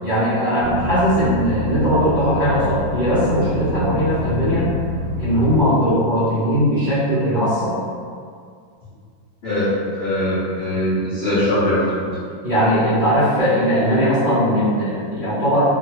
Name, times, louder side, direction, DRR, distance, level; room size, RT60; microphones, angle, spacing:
voice 1, 0.0-4.7 5.2-7.8 12.4-15.6, equal, 50° right, -14 dB, 0.6 m, -19 dB
sound 1, 0.6-5.6, left 1 dB, 75° right, 1.2 m, -27 dB
voice 2, 9.4-12.1, left 1 dB, 80° left, -12 dB, 0.5 m, -21 dB
3.0 x 2.3 x 2.9 m, 2.2 s
omnidirectional pair, 2.1 m